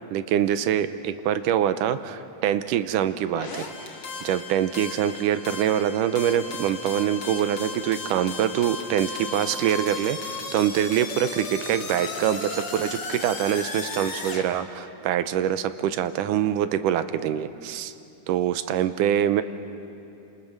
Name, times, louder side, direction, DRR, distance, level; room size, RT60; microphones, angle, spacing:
voice 1, 0.1-3.9 4.2-17.9 18.3-19.4, right 10 dB, 80° right, 11 dB, 2.3 m, -25 dB
sound 1, 3.3-14.5, left 4 dB, 40° left, 2.4 m, -35 dB
28.5 x 27.5 x 6.7 m, 2.8 s
omnidirectional pair, 3.8 m